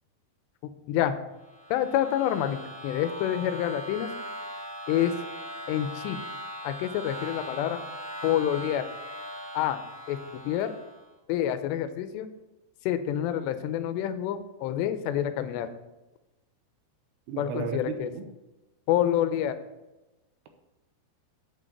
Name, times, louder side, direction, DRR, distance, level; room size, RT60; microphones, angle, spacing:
sound 1, 1.4-11.1, right 1 dB, 15° right, 1.3 m, -40 dB
voice 1, 1.7-4.1 4.9-5.1 5.7-6.2 6.6-7.8 8.2-8.8 9.5-9.8 10.1-10.7 11.3-12.3 12.9-15.7 17.4-18.1 18.9-19.5, left 11 dB, 90° left, 10 dB, 2.9 m, -27 dB
voice 2, 17.3-18.3, right 6 dB, 75° right, 5 dB, 2.9 m, -34 dB
8.3 x 6.3 x 6.7 m, 1.0 s
omnidirectional pair, 4.9 m